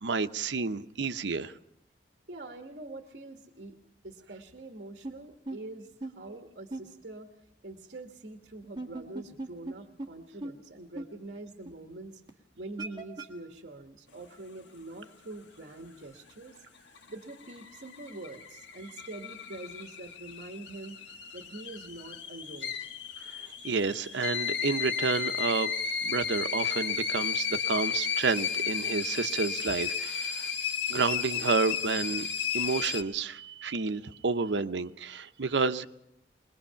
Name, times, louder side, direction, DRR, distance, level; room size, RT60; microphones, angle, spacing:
voice 1, 0.0-1.5 23.2-25.7 26.0-30.5 30.9-32.3 32.5-35.9, right 4 dB, 90° right, 10 dB, 0.7 m, -30 dB
voice 2, 2.3-3.8 4.0-7.3 7.6-12.2 12.5-21.0 21.3-22.8, right 2 dB, 60° right, 5 dB, 1.3 m, -45 dB
sound 1, 5.0-5.1 5.5-5.6 6.0-6.1 6.7-6.8 8.6-9.7 10.0-10.1 10.4-10.5 11.0-11.1 11.7-11.8 12.3-12.4 12.8-13.3, right 2 dB, 25° right, 1.7 m, -37 dB
sound 2, 16.8-33.0, left 7 dB, 90° left, 1.3 m, -34 dB
22.0 x 21.5 x 5.7 m, 0.81 s
head